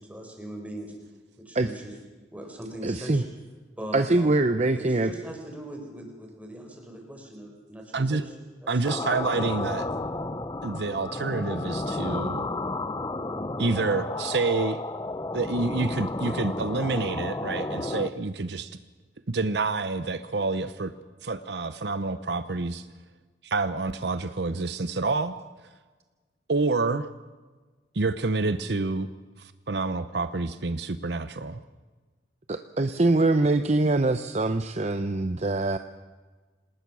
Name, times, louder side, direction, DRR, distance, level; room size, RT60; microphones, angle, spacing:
voice 1, 0.1-0.9 1.4-1.9 2.3-3.2 3.7-8.3 8.6-8.7, right 1 dB, 10° right, 2 dB, 4.7 m, -40 dB
voice 2, 2.8-3.2 3.9-5.1 32.8-35.8, right 2 dB, 40° right, 9 dB, 0.7 m, -23 dB
voice 3, 8.7-9.9 10.6-12.5 13.6-14.8 15.3-18.8 19.3-20.9 21.2-22.9 23.4-25.4 26.5-27.1 27.9-29.1 29.4-31.6, right 3 dB, 65° right, 11 dB, 0.8 m, -28 dB
sound 1, 8.8-18.1, left 2 dB, 20° left, 0.8 m, -32 dB
27.5 x 19.0 x 6.2 m, 1.3 s
head